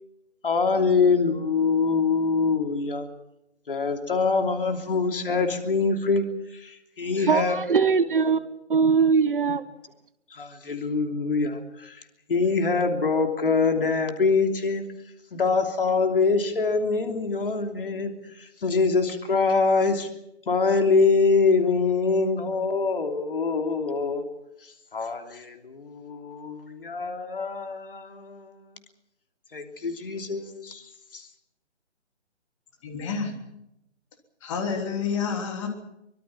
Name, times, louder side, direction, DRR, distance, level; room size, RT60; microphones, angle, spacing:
voice 1, 0.4-3.1 3.7-6.3 6.5-7.6 7.8-7.9 10.3-12.0 12.3-14.8 15.3-20.1 20.5-24.3 24.9-28.6 29.5-30.8 31.1-31.2, left 4 dB, 50° left, 5 dB, 3.1 m, -24 dB
voice 2, 7.2-8.4 8.7-9.6, right 5 dB, 45° right, 15 dB, 1.1 m, -21 dB
voice 3, 32.8-33.4 34.4-35.7, left 6 dB, 25° left, 4 dB, 3.4 m, -29 dB
24.0 x 23.0 x 6.0 m, 0.84 s
figure-of-eight pair, 145°, 35 cm